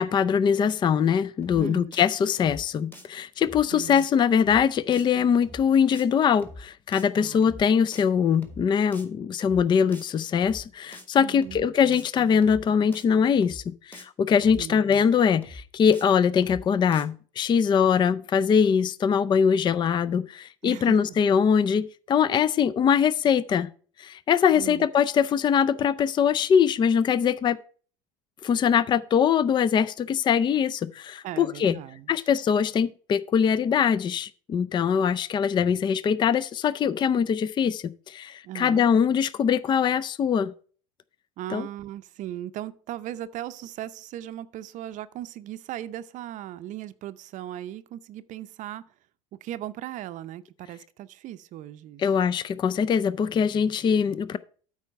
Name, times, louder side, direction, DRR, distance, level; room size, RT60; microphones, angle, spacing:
voice 1, 0.0-23.7 24.0-27.6 28.4-31.7 32.1-40.5 41.5-41.6 52.0-54.4, left 7 dB, 30° left, 0.4 m, -22 dB
sound 1, 1.4-1.6 1.9-2.1 2.3-2.6 2.9-3.0 3.4-3.6 3.9-4.1 4.3-4.6 4.9-5.1 5.4-5.6 5.9-6.1 6.3-6.6 6.9-7.1 7.4-7.6 7.9-8.0 8.3-8.6 8.9-9.1 9.4-9.6 9.9-10.1 10.3-10.6 10.9-11.1 11.4-11.6 11.9-12.1 12.3-12.6 12.9-13.1 13.4-13.6 13.9-14.1 14.3-14.6 14.9-15.0 15.4-15.6 15.9-16.1 16.3-16.6 16.9-17.0, left 1 dB, 10° left, 1.8 m, -44 dB
voice 2, 1.5-1.9 3.7-4.1 7.1-7.6 11.2-11.7 14.5-14.8 20.6-21.2 24.6-24.9 31.2-32.1 38.4-38.9 41.4-48.8 49.4-52.0, right 12 dB, 50° right, 0.6 m, -38 dB
8.4 x 4.8 x 6.5 m
hypercardioid pair, 85°, 17 cm